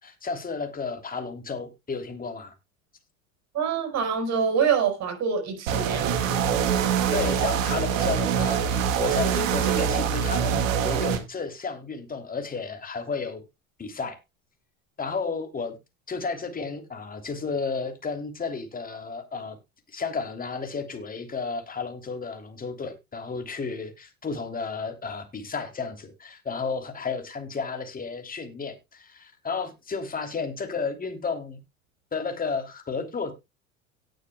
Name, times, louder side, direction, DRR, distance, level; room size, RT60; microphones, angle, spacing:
voice 1, 0.0-2.5 7.1-13.4 13.8-14.2 15.0-15.8 16.1-19.6 19.9-31.6 32.1-33.3, left 4 dB, 20° left, 3.0 m, -32 dB
voice 2, 3.5-6.4, right 7 dB, 40° right, 5.3 m, -26 dB
sound 1, 5.7-11.2, right 8 dB, 70° right, 1.9 m, -24 dB
17.5 x 6.7 x 2.2 m
hypercardioid pair, 80°, 40 cm